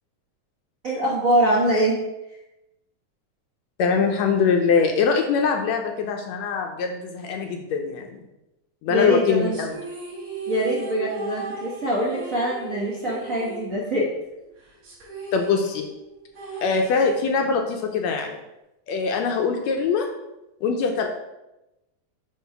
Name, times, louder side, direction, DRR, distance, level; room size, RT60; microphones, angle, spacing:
voice 1, 0.8-2.0 8.9-9.6 10.5-14.1, right 1 dB, 85° right, -4 dB, 0.7 m, -23 dB
voice 2, 3.8-8.2 8.8-9.8 15.3-15.9 16.6-18.4 18.9-20.1 20.6-21.1, left 5 dB, 75° left, 3 dB, 1.7 m, -23 dB
sound 1, 9.5-14.2 14.4-14.5 14.8-17.5, right 4 dB, 55° right, 3.0 m, -36 dB
7.5 x 3.1 x 5.7 m, 0.94 s
omnidirectional pair, 3.5 m